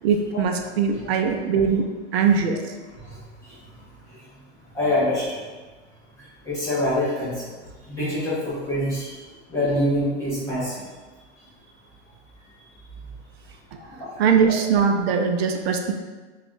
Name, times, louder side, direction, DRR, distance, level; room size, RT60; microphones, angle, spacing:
voice 1, 0.0-1.8 2.1-2.6 14.2-15.9, right 6 dB, 60° right, 4 dB, 0.5 m, -21 dB
voice 2, 4.7-5.4 6.4-7.3 7.9-9.1 9.5-10.8, left 1 dB, 10° left, -10 dB, 0.4 m, -24 dB
5.3 x 2.4 x 2.5 m, 1.3 s
supercardioid pair, 165°, 35 cm